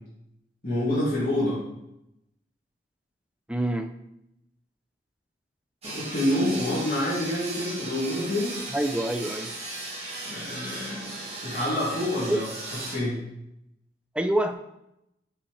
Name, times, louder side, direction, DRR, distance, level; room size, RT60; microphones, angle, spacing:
voice 1, 0.6-1.6 5.8-8.6 10.3-11.1 11.4-12.5 12.9-13.2, left 1 dB, 50° left, -10 dB, 2.7 m, -27 dB
voice 2, 3.5-3.9 8.7-9.5 12.3-12.4 14.1-14.5, right 1 dB, 5° right, 6 dB, 0.4 m, -26 dB
sound 1, 5.8-13.0, right 2 dB, 35° right, 1.9 m, -37 dB
8.0 x 5.6 x 3.3 m, 0.84 s
head